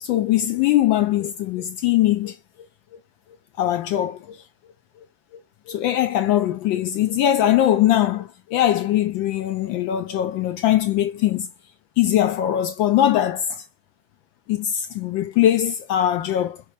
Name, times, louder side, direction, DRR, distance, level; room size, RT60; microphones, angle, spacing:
voice 1, 0.0-2.4 3.6-4.4 5.7-11.5 12.0-13.6 14.5-16.6, left 12 dB, 40° left, 0.5 m, -21 dB
4.5 x 2.6 x 3.3 m
supercardioid pair, 150°, 29 cm